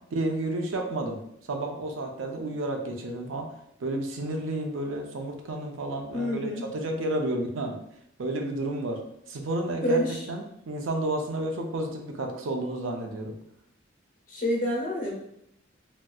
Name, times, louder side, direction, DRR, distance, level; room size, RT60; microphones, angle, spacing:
voice 1, 0.1-1.2 1.5-3.5 3.8-7.8 8.2-9.0 9.3-13.3, right 1 dB, 80° right, 3 dB, 0.5 m, -31 dB
voice 2, 6.1-6.6 9.7-10.3 14.3-15.1, equal, 45° left, -3 dB, 1.0 m, -28 dB
3.2 x 2.7 x 2.3 m, 0.75 s
head